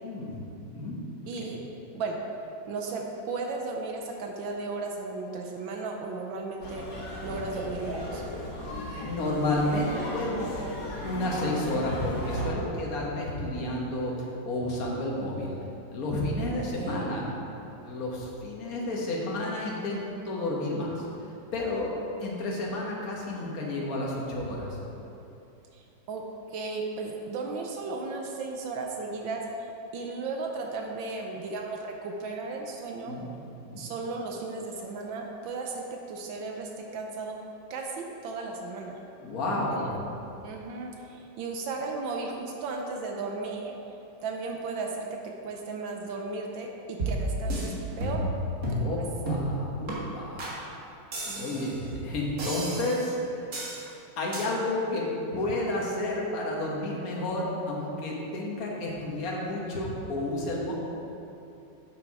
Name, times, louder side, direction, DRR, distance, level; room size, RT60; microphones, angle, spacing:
voice 1, 0.0-1.0 8.8-10.6 11.0-15.5 15.9-17.3 17.8-21.0 21.5-24.8 33.0-33.2 33.6-33.8 39.2-39.9 48.8-50.5 51.3-53.5 53.8-60.7, left 1 dB, 50° left, -3 dB, 1.7 m, -31 dB
voice 2, 1.3-1.6 1.9-2.2 2.7-6.8 7.2-8.2 16.6-17.2 25.7-25.8 26.1-26.2 26.5-29.7 29.9-33.2 33.8-37.4 37.7-39.0 39.7-40.0 40.4-43.7 44.2-45.1 45.4-48.2 48.8-49.0 51.3-51.7, right 3 dB, 80° right, 1 dB, 1.5 m, -35 dB
sound 1, 6.6-12.5, left 1 dB, 90° left, 2.8 m, -36 dB
sound 2, 47.0-47.7 48.0-48.4 48.6-48.9 49.3-49.5 49.9-50.0 50.4-50.5 51.1-51.8 52.4-53.1 53.5-53.8 54.3-54.4, right 1 dB, 50° right, 1.9 m, -31 dB
7.8 x 6.6 x 4.8 m, 2.9 s
omnidirectional pair, 2.1 m